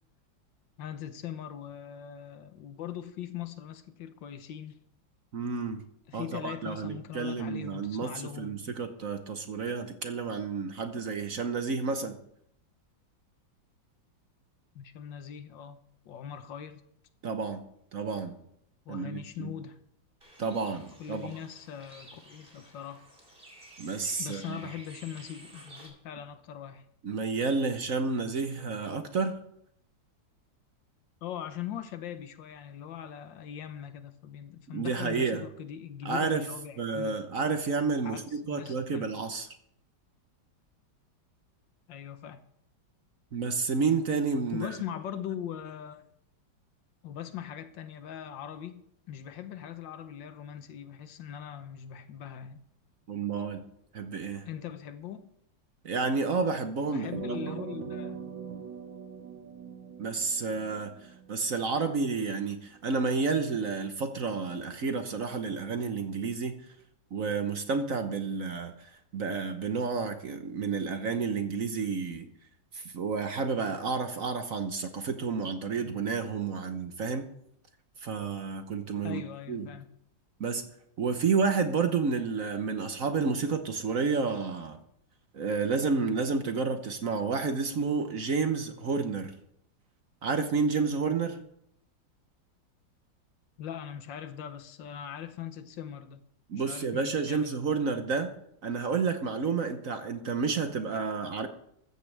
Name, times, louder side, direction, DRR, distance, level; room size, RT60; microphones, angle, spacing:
voice 1, 0.8-4.8 6.1-8.6 14.7-15.8 16.0-16.8 18.9-19.8 21.0-23.1 24.2-26.9 31.2-37.2 38.0-39.1 41.9-42.4 44.5-46.1 47.0-48.8 49.1-52.6 54.4-55.2 56.9-58.2 79.0-79.9 93.6-96.2 96.5-97.6, left 9 dB, 75° left, 1.6 m, -41 dB
voice 2, 5.3-5.8 6.1-8.1 8.4-12.2 17.2-17.6 17.9-18.4 18.9-19.5 20.4-21.3 23.8-24.6 27.0-29.4 34.7-35.4 36.0-36.4 36.8-39.5 43.3-44.7 53.1-53.6 53.9-54.4 55.8-57.1 57.5-57.6 60.0-66.5 67.1-68.9 69.1-72.3 72.7-77.3 78.0-79.2 79.5-79.7 80.4-80.6 81.0-84.8 85.3-89.3 90.2-91.4 96.5-98.3 98.6-101.5, right 4 dB, 50° right, 1.2 m, -30 dB
Bird, 20.2-25.9, right 1 dB, 25° right, 3.2 m, -52 dB
sound 1, 57.1-61.7, right 6 dB, 80° right, 2.1 m, -41 dB
15.0 x 13.5 x 3.4 m
omnidirectional pair, 2.1 m